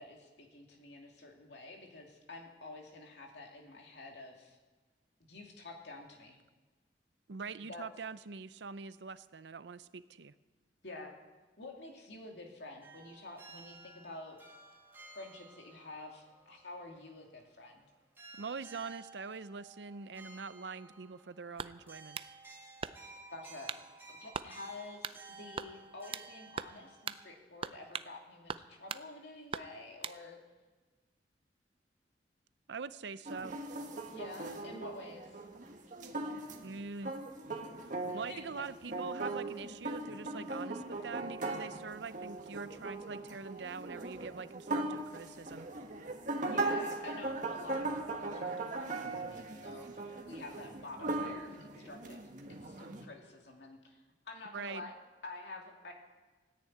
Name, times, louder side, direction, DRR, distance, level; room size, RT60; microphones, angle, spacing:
voice 1, 0.0-4.6 5.3-6.4 7.7-7.8 10.8-11.1 11.6-14.4 15.1-17.9 23.3-23.7 24.1-30.4 34.1-35.4 38.1-38.4 46.4-52.2 52.5-54.9 55.2-55.9, left 2 dB, 70° left, 1 dB, 2.6 m, -49 dB
voice 2, 7.3-10.3 18.4-22.3 32.7-33.6 36.6-37.1 38.1-45.7 54.5-54.9, right 5 dB, 75° right, 14 dB, 0.6 m, -44 dB
sound 1, 12.8-17.8 18.2-27.4, right 3 dB, 15° right, 2.2 m, -55 dB
sound 2, 21.6-22.3 22.8-23.2 23.7-23.9 24.3-24.5 25.0-25.2 25.6-26.3 26.6-26.8 27.1-27.2 27.6-28.1 28.5-29.1 29.5-30.2, right 6 dB, 30° right, 0.4 m, -41 dB
sound 3, 33.3-53.1, right 2 dB, 45° right, 1.6 m, -39 dB
14.5 x 10.0 x 8.7 m, 1.3 s
head